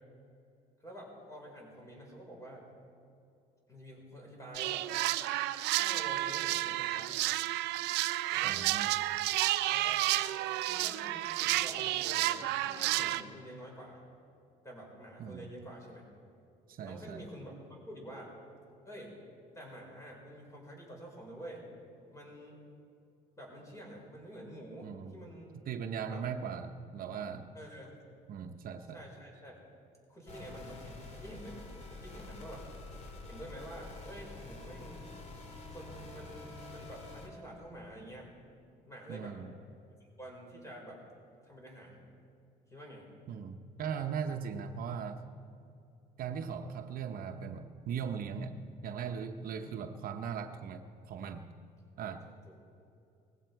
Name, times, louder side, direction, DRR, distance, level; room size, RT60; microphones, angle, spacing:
voice 1, 0.8-2.7 3.7-4.9 5.7-7.1 8.3-8.6 9.6-10.0 10.7-14.0 14.6-16.0 16.8-18.3 18.8-19.1 19.5-21.6 22.1-22.6 23.4-25.5 26.1-26.2 27.5-28.0 28.9-29.6 30.1-31.6 32.0-32.6 33.3-35.1 35.7-38.3 38.8-39.4 40.2-41.0 41.4-42.0 42.7-43.0 49.6-49.9 52.1-52.2 52.5-52.6, equal, 20° left, -1 dB, 5.0 m, -48 dB
sound 1, 4.5-13.2, right 16 dB, 90° right, 0.5 m, -31 dB
voice 2, 8.4-8.9 15.2-15.5 16.7-17.2 24.8-25.1 25.5-27.5 28.3-29.0 39.1-39.5 43.3-45.2 46.2-51.5 52.0-52.3, right 7 dB, 60° right, 6 dB, 0.8 m, -39 dB
sound 2, 30.3-37.3, left 2 dB, 40° left, 2.5 m, -47 dB
19.0 x 16.0 x 4.7 m, 2.6 s
cardioid pair, 110°, 17 cm